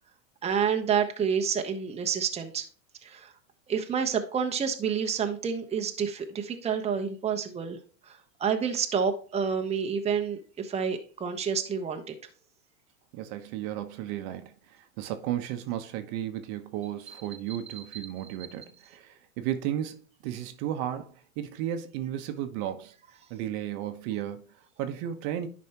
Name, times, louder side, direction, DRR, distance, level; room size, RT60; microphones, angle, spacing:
voice 1, 0.4-2.6 3.0-3.3 3.7-7.8 8.1-12.1 17.5-17.6, right 7 dB, 15° right, 1.0 m, -29 dB
voice 2, 13.1-20.0 20.2-22.9 23.3-25.5, right 11 dB, 50° right, 1.1 m, -34 dB
11.0 x 5.3 x 2.9 m
hypercardioid pair, 115°, 40 cm